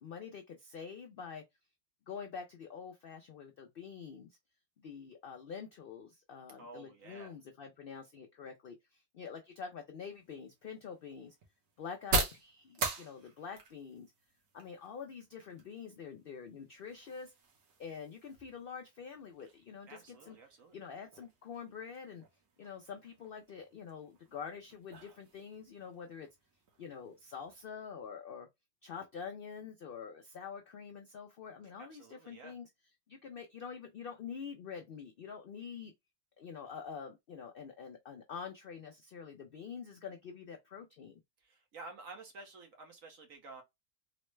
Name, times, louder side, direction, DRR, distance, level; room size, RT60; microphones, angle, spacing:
voice 1, 0.0-1.4 2.1-4.3 4.8-11.4 11.8-14.1 14.5-17.3 17.8-20.4 20.7-22.2 22.6-26.3 26.8-28.5 28.8-32.7 33.1-35.9 36.4-41.2, left 6 dB, 75° left, 0.5 m, -46 dB
voice 2, 6.6-7.3 19.9-20.8 31.8-32.5 41.4-43.6, right 3 dB, 70° right, 1.4 m, -51 dB
sound 1, 10.0-27.6, right 3 dB, 85° right, 1.6 m, -43 dB
3.9 x 2.1 x 3.1 m
omnidirectional pair, 1.5 m